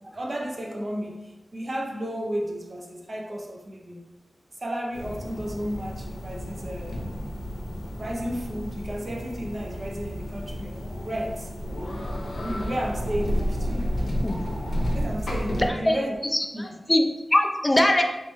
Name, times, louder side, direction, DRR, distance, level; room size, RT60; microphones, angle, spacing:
voice 1, 0.0-4.0 4.6-7.1 8.0-11.5 12.4-13.9 14.9-16.2 16.5-16.8, equal, 45° right, 1 dB, 0.6 m, -33 dB
sound 1, 4.9-15.7, equal, 90° left, 0.5 m, -31 dB
voice 2, 16.3-18.0, left 1 dB, 20° left, 3 dB, 0.4 m, -22 dB
3.2 x 3.2 x 3.0 m, 1.0 s
wide cardioid pair, 70°, 0 cm